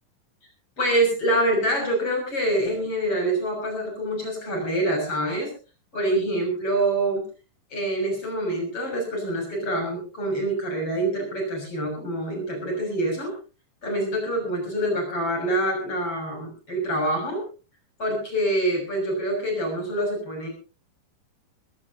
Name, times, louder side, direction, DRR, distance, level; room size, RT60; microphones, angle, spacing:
voice 1, 0.8-5.5 5.9-7.2 7.7-13.3 13.8-17.4 18.0-20.5, right 1 dB, 40° left, 2 dB, 7.5 m, -26 dB
22.0 x 18.0 x 2.8 m, 0.35 s
omnidirectional pair, 4.0 m